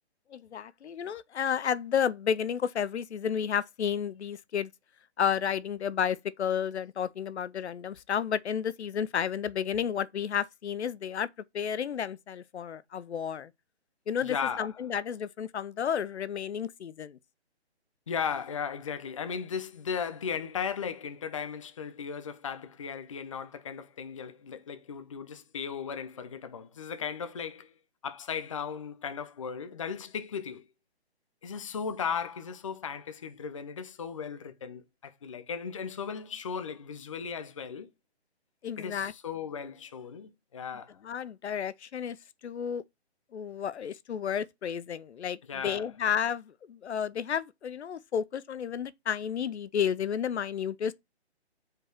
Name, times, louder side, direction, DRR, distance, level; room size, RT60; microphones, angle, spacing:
voice 1, 0.3-4.7 5.2-11.3 11.5-13.5 14.1-17.2 38.6-39.1 41.0-42.2 42.4-42.8 43.3-45.4 45.6-50.9, left 8 dB, 75° left, 0.6 m, -31 dB
voice 2, 14.2-14.7 18.1-27.7 28.0-30.6 31.4-37.9 38.8-41.0 45.5-45.9, left 6 dB, 30° left, 0.5 m, -36 dB
4.9 x 4.7 x 4.5 m
hypercardioid pair, 165°, 33 cm